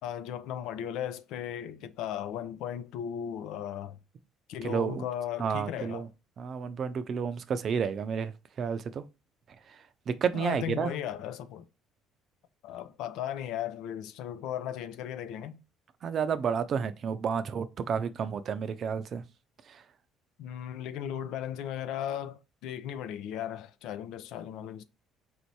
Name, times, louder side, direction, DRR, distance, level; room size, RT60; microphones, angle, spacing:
voice 1, 0.0-4.0 4.5-6.1 10.3-11.7 12.6-15.6 20.4-24.8, left 10 dB, 75° left, 0.5 m, -36 dB
voice 2, 4.6-5.1 5.4-6.1 6.4-8.3 8.6-9.0 10.1-11.0 16.0-19.2 19.7-19.8, right 6 dB, 45° right, 0.5 m, -31 dB
4.2 x 2.7 x 4.6 m
cardioid pair, 105°, 0 cm